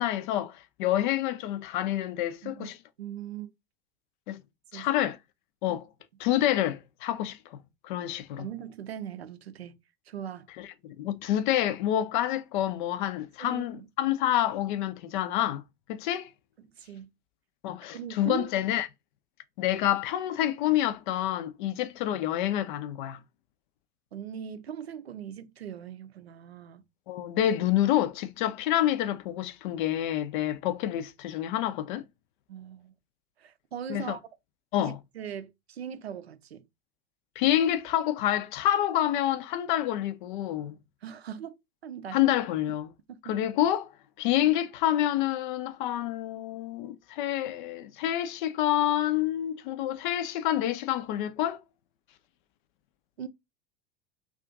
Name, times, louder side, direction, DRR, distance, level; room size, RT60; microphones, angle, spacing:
voice 1, 0.0-2.8 4.3-4.4 4.7-5.2 5.6-5.8 6.2-7.6 7.8-8.5 10.6-15.6 15.9-16.3 17.6-18.9 19.6-23.2 27.1-32.0 33.9-34.2 34.7-35.0 37.4-40.7 42.1-42.9 43.2-43.9 44.2-51.6, left 12 dB, 50° left, 0.5 m, -28 dB
voice 2, 3.0-3.5 4.7-4.9 8.4-9.7 10.1-10.5 13.4-13.9 16.8-17.1 17.9-18.5 21.7-21.8 24.1-26.8 32.5-32.9 33.4-34.2 34.8-36.6 41.0-41.6 41.8-42.2 43.1-43.4 53.2-53.3, right 9 dB, 80° right, 0.5 m, -40 dB
2.5 x 2.4 x 3.6 m
figure-of-eight pair, 75°, 31 cm